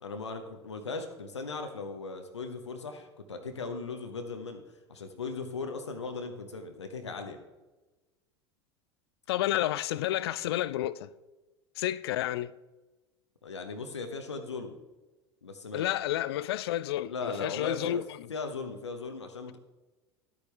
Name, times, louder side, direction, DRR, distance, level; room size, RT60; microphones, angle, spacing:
voice 1, 0.0-7.4 9.3-9.4 13.4-14.8 15.4-15.9 17.1-18.0 18.3-19.6, left 4 dB, 80° left, 1.0 m, -38 dB
voice 2, 9.3-11.1 11.8-12.5 15.7-18.2, left 13 dB, 60° left, 0.4 m, -30 dB
12.0 x 8.6 x 3.3 m
figure-of-eight pair, 75°, 15 cm